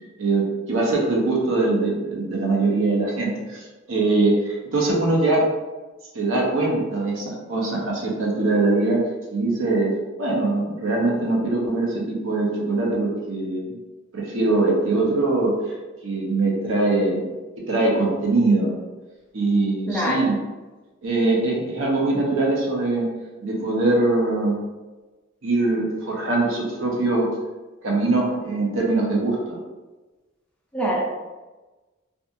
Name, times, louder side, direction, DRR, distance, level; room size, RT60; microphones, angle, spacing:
voice 1, 0.2-5.4 6.1-9.0 9.3-9.9 10.2-13.7 14.1-15.5 16.0-17.3 17.7-18.8 19.3-20.4 21.0-23.1 23.4-24.6 25.4-27.3 27.8-29.6, right 2 dB, 80° right, -2 dB, 0.7 m, -22 dB
voice 2, 19.9-20.3 30.7-31.0, equal, 5° left, -4 dB, 0.4 m, -24 dB
2.7 x 2.4 x 2.4 m, 1.2 s
head